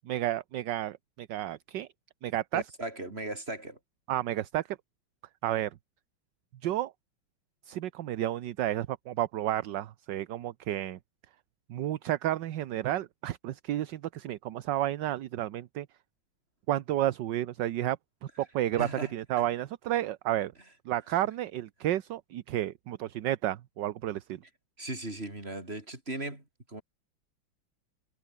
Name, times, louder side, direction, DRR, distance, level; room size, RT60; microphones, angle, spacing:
voice 1, 0.0-1.9 2.2-2.6 4.1-4.8 5.4-5.7 6.6-6.9 7.7-11.0 11.7-15.9 16.7-18.0 18.4-20.5 20.8-24.4, right 13 dB, 65° right, 1.4 m, -31 dB
voice 2, 2.5-3.8 18.7-19.1 24.8-26.8, right 2 dB, 30° right, 5.7 m, -37 dB
omnidirectional pair, 2.3 m